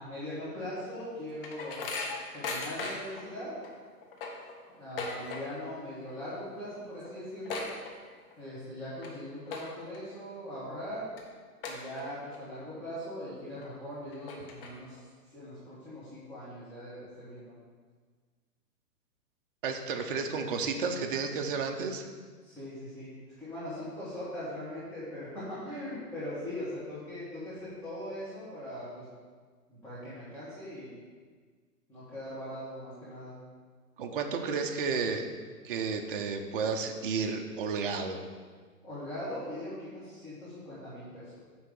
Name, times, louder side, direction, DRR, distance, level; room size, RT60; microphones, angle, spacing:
voice 1, 0.0-1.9 2.3-3.5 4.7-7.6 8.4-11.0 11.7-15.0 15.3-17.5 22.4-23.1 23.4-29.0 29.7-30.9 31.9-33.4 38.8-41.4, left 1 dB, 5° left, -13 dB, 1.6 m, -40 dB
sound 1, 0.8-3.2 3.6-3.7 4.0-5.7 6.0-6.4 6.7-6.8 7.0-8.4 8.8-9.1 9.5-10.0 10.5-10.6 11.2-11.3 11.6-12.4 12.8-12.9 13.6-13.7 14.1-15.0, left 3 dB, 35° left, 1.1 m, -38 dB
voice 2, 19.6-22.0 34.0-35.3 35.6-38.2, right 5 dB, 35° right, 4 dB, 0.6 m, -32 dB
9.3 x 3.3 x 6.4 m, 1.6 s
hypercardioid pair, 155°, 48 cm